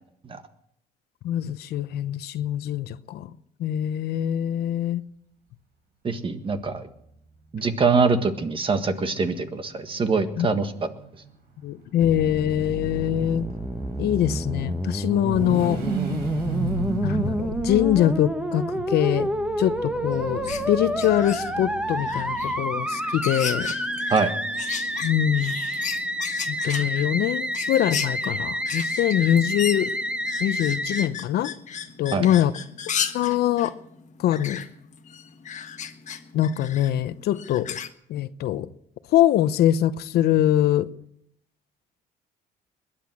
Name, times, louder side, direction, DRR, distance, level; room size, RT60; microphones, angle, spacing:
voice 1, 1.2-3.3 3.6-5.0 10.4-10.5 11.6-13.5 14.0-15.8 17.0-19.3 19.6-23.7 25.0-25.6 26.5-29.9 30.4-31.5 32.0-32.5 33.1-33.7 34.2-34.6 36.3-37.8 38.1-38.7 39.1-40.9, left 11 dB, 70° left, 0.8 m, -23 dB
voice 2, 6.0-6.9 7.5-10.7 24.1-24.3 32.1-32.3, right 4 dB, 30° right, 1.6 m, -23 dB
sound 1, 6.6-6.7 7.0-7.1 8.7-11.3 13.6-22.6, right 3 dB, 75° right, 4.3 m, -34 dB
Musical instrument, 12.0-31.1, equal, 5° right, 1.2 m, -29 dB
sound 2, 20.1-37.9, left 8 dB, 45° left, 1.4 m, -36 dB
21.5 x 10.0 x 6.2 m
cardioid pair, 110°, 17 cm